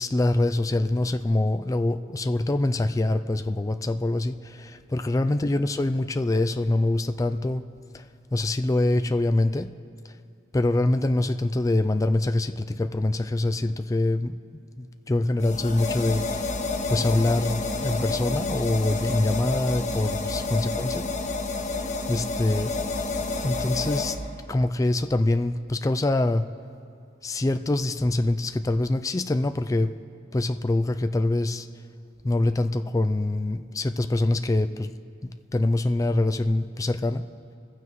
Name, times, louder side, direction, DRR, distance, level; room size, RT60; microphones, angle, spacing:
voice 1, 0.0-7.6 7.9-9.7 10.5-16.5 16.9-21.1 22.1-22.7 23.4-24.2 24.5-26.4 27.2-29.9 30.3-31.7 32.2-34.9 35.2-37.2, left 2 dB, 20° left, 8 dB, 0.3 m, -24 dB
sound 1, 15.4-24.1, left 3 dB, 40° left, 1.1 m, -29 dB
25.0 x 15.0 x 3.1 m, 2.4 s
head